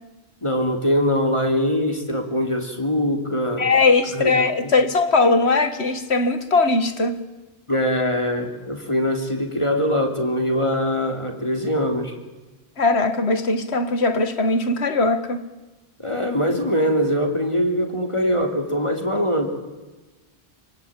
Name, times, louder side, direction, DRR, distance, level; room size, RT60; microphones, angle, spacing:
voice 1, 0.4-3.6 4.1-4.3 7.7-12.1 16.0-19.5, equal, 30° left, 3.2 m, -22 dB
voice 2, 3.6-7.2 12.8-15.4, left 3 dB, 90° left, 2.0 m, -20 dB
25.5 x 25.0 x 8.9 m
omnidirectional pair, 1.1 m